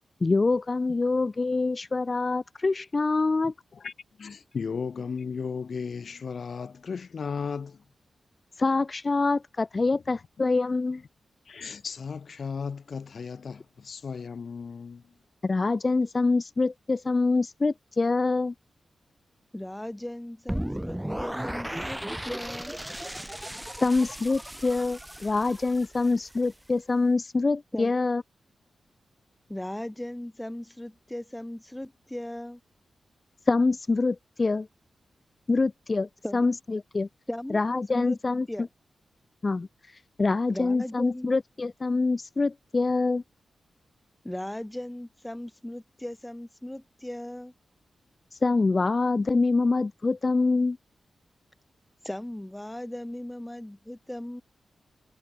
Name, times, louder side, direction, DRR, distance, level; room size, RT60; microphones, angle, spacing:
voice 1, 0.2-3.5 8.6-11.0 15.4-18.5 23.8-28.2 33.5-34.7 35.5-37.1 37.5-38.5 39.4-43.2 48.3-50.8, left 3 dB, 35° left, 0.8 m, -25 dB
voice 2, 4.2-7.8 9.9-10.0 11.4-15.1, left 5 dB, 60° left, 1.3 m, -35 dB
voice 3, 19.5-22.7 27.7-27.9 29.5-32.6 36.2-36.5 37.3-37.6 37.9-38.2 38.5-38.7 40.5-41.3 44.2-47.5 52.0-54.4, left 1 dB, 10° left, 4.8 m, -37 dB
sound 1, 20.5-26.5, right 1 dB, 5° right, 1.4 m, -36 dB
cardioid pair, 80°, 0 cm